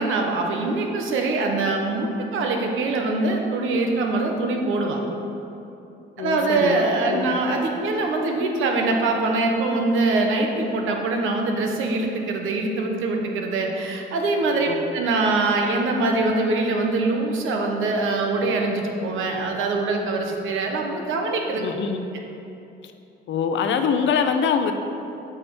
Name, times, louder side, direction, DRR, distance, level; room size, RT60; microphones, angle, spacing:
voice 1, 0.0-5.0 6.2-21.7, right 3 dB, 85° right, 2 dB, 1.1 m, -23 dB
voice 2, 6.2-7.4 14.7-14.8 21.6-22.1 23.3-24.7, left 6 dB, 70° left, 7 dB, 0.7 m, -24 dB
8.3 x 5.0 x 6.2 m, 2.9 s
cardioid pair, 90°, 20 cm